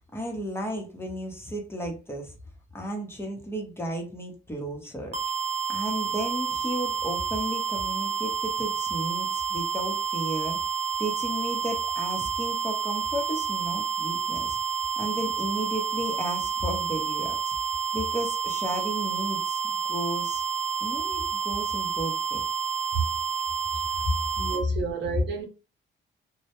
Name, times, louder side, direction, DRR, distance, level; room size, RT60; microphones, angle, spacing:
voice 1, 0.1-2.4 2.7-5.2 5.7-10.6 11.0-14.6 15.0-17.5 17.9-19.6 19.8-20.4 20.8-22.4, equal, 10° left, 0.7 m, -34 dB
sound 1, 5.1-24.6, right 7 dB, 35° right, 0.7 m, -29 dB
voice 2, 24.4-25.4, right 5 dB, 65° right, 0.7 m, -30 dB
2.1 x 2.0 x 2.9 m
cardioid pair, 90°, 20 cm